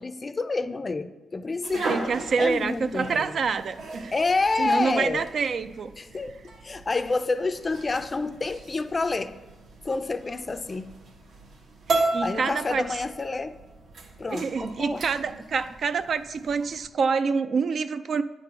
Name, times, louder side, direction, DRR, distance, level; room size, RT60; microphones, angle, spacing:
voice 1, 0.0-1.9 2.4-3.1 4.1-5.2 6.0-6.4 6.6-9.3 9.8-10.9 12.2-13.6 14.2-15.0, left 3 dB, 30° left, 0.4 m, -28 dB
sound 1, 1.6-16.9, right 3 dB, 70° right, 1.1 m, -36 dB
voice 2, 1.9-4.1 4.6-5.9 11.9-12.8 14.3-18.2, right 5 dB, 55° right, 0.3 m, -27 dB
8.9 x 3.8 x 5.9 m
cardioid pair, 110°, 0 cm